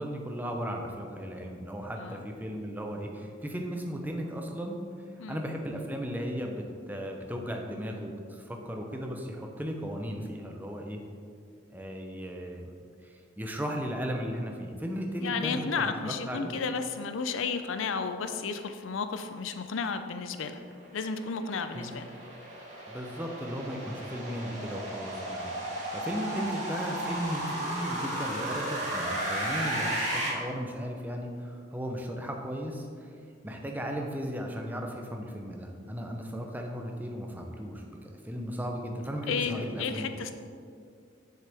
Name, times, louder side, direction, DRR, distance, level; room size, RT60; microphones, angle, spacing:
voice 1, 0.0-4.8 5.3-11.0 11.7-12.6 13.0-16.5 21.7-22.0 22.9-25.5 25.9-33.1 33.4-37.8 38.2-40.1, equal, 10° right, 2 dB, 0.6 m, -36 dB
voice 2, 15.2-20.6 20.9-22.1 26.2-26.5 39.3-40.3, left 5 dB, 85° left, 9 dB, 0.5 m, -33 dB
sound 1, 20.7-30.3, right 1 dB, 35° right, 1.9 m, -34 dB
7.7 x 6.6 x 3.5 m, 2.3 s
head